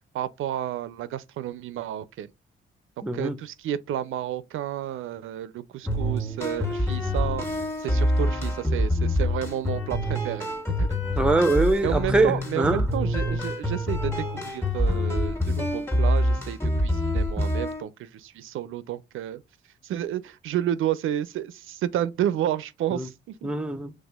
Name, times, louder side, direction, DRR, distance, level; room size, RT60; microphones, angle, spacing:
voice 1, 0.1-2.3 3.1-7.5 7.8-10.5 10.8-10.9 11.8-19.4 19.8-23.5, right 11 dB, 75° right, 0.4 m, -31 dB
voice 2, 3.0-3.4 11.2-12.9 22.9-23.1 23.4-23.9, right 2 dB, 5° right, 0.5 m, -23 dB
sound 1, 5.9-17.8, left 1 dB, 10° left, 1.3 m, -26 dB
5.4 x 3.2 x 2.3 m
cardioid pair, 95°, 21 cm